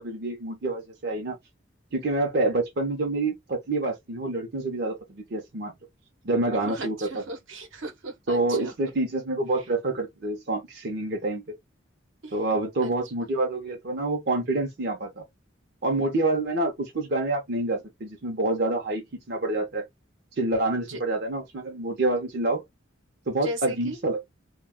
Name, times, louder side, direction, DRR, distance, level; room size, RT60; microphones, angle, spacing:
voice 1, 0.0-1.4 1.9-5.7 6.2-7.2 8.3-11.4 12.3-15.2 15.8-19.8 20.4-22.6 23.3-24.3, right 2 dB, 55° right, 0.7 m, -27 dB
voice 2, 6.5-8.9 12.2-12.4 12.8-12.9 13.2-13.3 20.9-21.0 23.4-24.0, right 2 dB, 80° right, 1.0 m, -37 dB
2.3 x 2.3 x 3.5 m
head